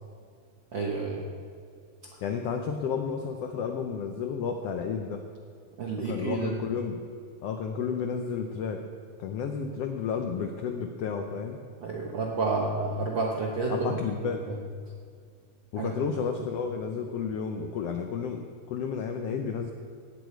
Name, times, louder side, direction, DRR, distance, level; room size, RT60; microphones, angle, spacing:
voice 1, 0.7-1.2 5.8-6.5 11.8-14.0 14.5-14.6 15.8-15.9, right 3 dB, 70° right, -2 dB, 1.1 m, -30 dB
voice 2, 2.2-5.2 6.0-7.0 7.4-8.8 9.2-11.6 13.7-14.4 15.7-19.7, left 6 dB, 80° left, 4 dB, 1.3 m, -32 dB
17.0 x 8.4 x 4.6 m, 2.2 s
omnidirectional pair, 3.7 m